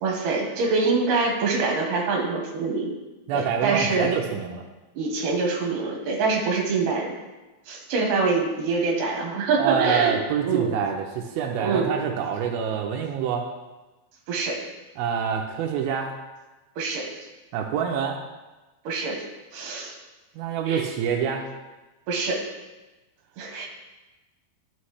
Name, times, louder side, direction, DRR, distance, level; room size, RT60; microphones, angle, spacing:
voice 1, 0.0-2.9 3.3-4.1 5.0-7.1 7.7-10.2 10.4-10.7 11.6-11.9 14.3-14.6 16.8-17.1 18.8-19.2 19.5-19.9 20.7-20.9 22.1-22.4 23.4-23.7, right 4 dB, 70° right, 0 dB, 2.8 m, -25 dB
voice 2, 3.3-4.6 9.6-13.5 15.0-16.1 17.5-18.2 20.4-21.4, right 7 dB, 90° right, 1 dB, 2.5 m, -26 dB
11.5 x 6.3 x 3.2 m, 1.1 s
omnidirectional pair, 4.2 m